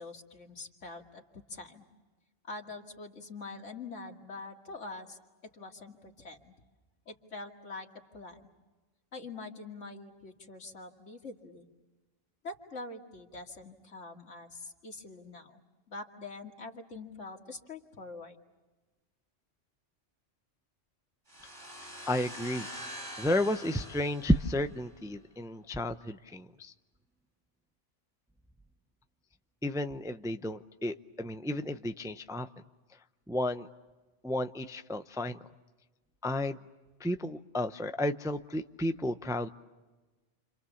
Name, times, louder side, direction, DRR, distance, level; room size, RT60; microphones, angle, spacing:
voice 1, 0.0-1.8 2.5-6.5 7.1-7.9 8.1-8.4 9.1-11.7 12.4-15.6 15.9-18.4, left 3 dB, 75° left, 2 dB, 2.6 m, -45 dB
sound 1, 21.3-25.0, equal, 40° right, 6.2 m, -45 dB
voice 2, 22.1-22.7 22.9-26.7 29.6-32.5 33.3-33.7 34.2-35.4 36.2-36.6 37.0-39.5, left 1 dB, 5° right, 8 dB, 0.5 m, -32 dB
29.5 x 27.0 x 7.2 m, 1.2 s
omnidirectional pair, 1.3 m